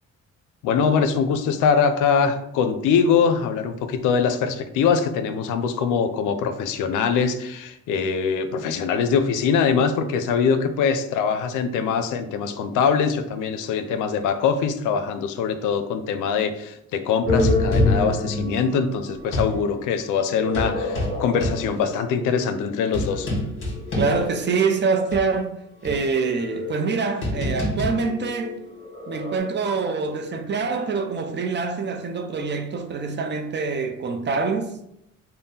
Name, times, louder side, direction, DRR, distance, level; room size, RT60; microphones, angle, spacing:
voice 1, 0.6-23.3, left 6 dB, 90° left, 0.5 m, -23 dB
sound 1, 17.3-19.6 20.3-24.7 25.1-25.2 25.8-29.4, left 1 dB, 45° left, 1.4 m, -26 dB
voice 2, 24.0-28.6 29.1-34.7, right 4 dB, 35° right, 0.5 m, -25 dB
3.5 x 2.1 x 4.1 m
cardioid pair, 90°, 30 cm